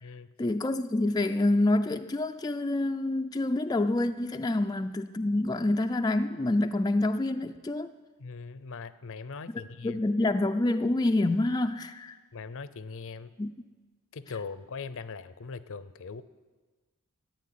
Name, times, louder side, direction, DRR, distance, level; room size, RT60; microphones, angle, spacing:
voice 1, 0.4-7.9 9.5-12.2 13.4-13.5, left 2 dB, 20° left, 6 dB, 0.4 m, -27 dB
voice 2, 8.2-10.0 12.3-13.3 14.1-16.2, left 4 dB, 60° left, 15 dB, 0.6 m, -40 dB
13.5 x 9.0 x 9.4 m, 1.3 s
head